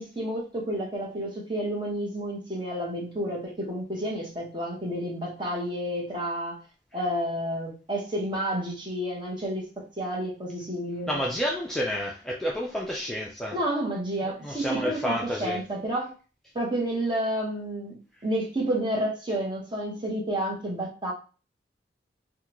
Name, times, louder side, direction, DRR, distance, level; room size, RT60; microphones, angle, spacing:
voice 1, 0.0-6.6 6.9-11.2 13.5-16.1 16.5-21.1, right 1 dB, 25° right, -2 dB, 1.1 m, -30 dB
voice 2, 11.1-13.6 14.2-15.6, equal, 5° left, -3 dB, 0.4 m, -30 dB
3.5 x 2.3 x 2.9 m, 0.35 s
head